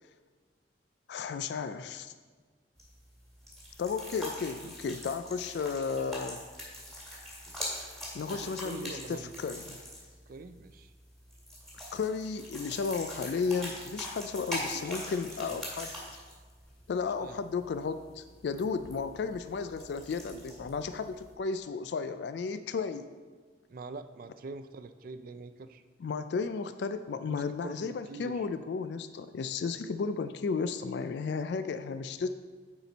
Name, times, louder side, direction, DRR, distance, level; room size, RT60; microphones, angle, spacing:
voice 1, 1.1-2.1 3.8-6.4 8.1-9.8 11.9-15.9 16.9-23.1 26.0-32.3, left 5 dB, 65° left, 10 dB, 0.3 m, -34 dB
sound 1, 2.8-21.3, equal, ahead, 1.9 m, -43 dB
voice 2, 8.3-9.3 10.3-10.9 14.7-14.8 15.5-15.6 16.3-16.4 17.2-17.4 23.7-25.8 27.2-28.5, right 3 dB, 50° right, 10 dB, 0.4 m, -44 dB
9.4 x 4.4 x 4.0 m, 1.5 s
head